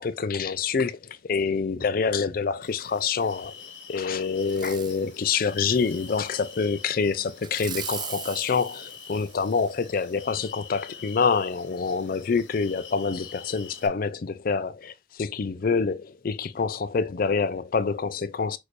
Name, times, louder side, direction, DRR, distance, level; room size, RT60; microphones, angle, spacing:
voice 1, 0.0-3.6 3.9-18.6, left 5 dB, 50° left, 0.4 m, -26 dB
sound 1, 2.6-13.9, left 7 dB, 85° left, 1.2 m, -45 dB
Fireworks, 4.4-5.0 5.6-6.6 7.4-9.8 10.3-10.4, right 7 dB, 25° right, 0.4 m, -40 dB
6.2 x 2.6 x 3.1 m
head